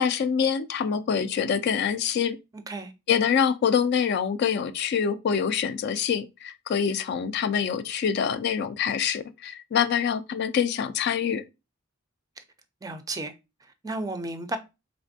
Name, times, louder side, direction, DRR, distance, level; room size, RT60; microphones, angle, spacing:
voice 1, 0.0-2.4 3.1-11.4, left 7 dB, 55° left, 0.3 m, -25 dB
voice 2, 2.5-2.9 12.4-12.5 12.8-13.3 13.6-14.6, right 2 dB, 15° right, 0.4 m, -33 dB
4.2 x 3.2 x 2.6 m
head